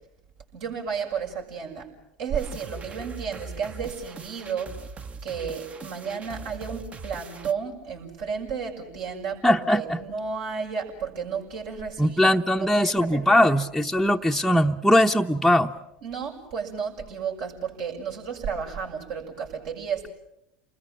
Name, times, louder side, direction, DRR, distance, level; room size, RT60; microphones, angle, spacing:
voice 1, 0.5-1.9 2.2-4.9 5.2-13.5 16.0-20.1, right 6 dB, 65° right, 1 dB, 6.5 m, -33 dB
sound 1, 2.4-7.5, right 5 dB, 25° right, 1.0 m, -41 dB
voice 2, 9.4-10.0 12.0-15.7, left 1 dB, ahead, 1 dB, 0.9 m, -20 dB
29.0 x 21.0 x 7.7 m, 0.84 s
hypercardioid pair, 80°, 5 cm